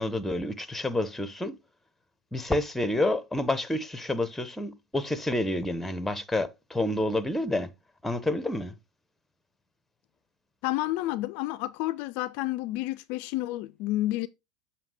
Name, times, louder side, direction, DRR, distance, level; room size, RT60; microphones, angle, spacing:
voice 1, 0.0-1.6 2.3-7.7 8.0-8.7, left 1 dB, 5° left, 0.8 m, -29 dB
voice 2, 10.6-14.3, left 17 dB, 60° left, 0.3 m, -30 dB
7.1 x 2.9 x 4.8 m
hypercardioid pair, 85°, 3 cm